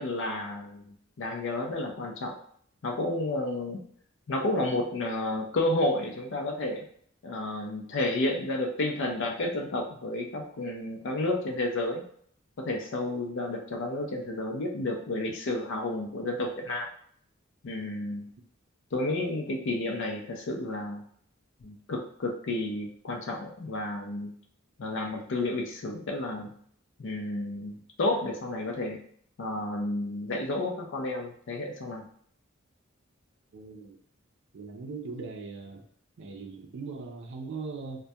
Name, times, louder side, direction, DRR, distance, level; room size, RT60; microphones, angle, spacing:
voice 1, 0.0-2.4 2.8-3.8 4.3-6.8 7.2-12.0 12.6-16.9 17.6-18.3 18.9-21.0 21.6-24.3 24.8-26.5 27.0-29.0 29.4-32.1, left 2 dB, 65° left, 2 dB, 0.5 m, -31 dB
voice 2, 33.5-34.0 34.5-35.8 36.2-38.0, right 4 dB, 65° right, 4 dB, 0.4 m, -39 dB
2.2 x 2.2 x 2.7 m, 0.62 s
head